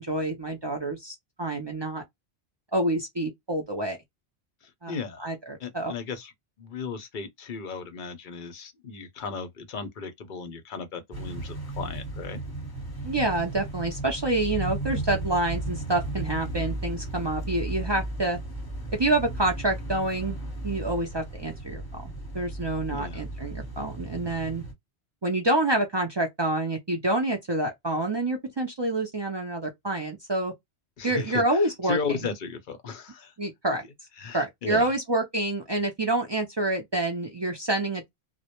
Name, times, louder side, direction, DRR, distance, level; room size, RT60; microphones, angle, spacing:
voice 1, 0.0-2.0 2.7-4.0 4.8-4.9 5.2-5.9 13.0-18.4 18.9-20.4 20.6-22.0 22.3-24.6 25.2-30.5 31.0-32.0 33.4-33.8 34.3-38.1, right 2 dB, 40° right, 0.3 m, -27 dB
voice 2, 4.9-5.3 5.6-6.3 6.6-12.4 22.9-23.2 31.0-33.3 34.2-34.8, left 5 dB, 60° left, 0.7 m, -35 dB
sound 1, 11.1-24.7, right 2 dB, 20° left, 1.0 m, -35 dB
2.1 x 2.0 x 2.8 m
omnidirectional pair, 1.1 m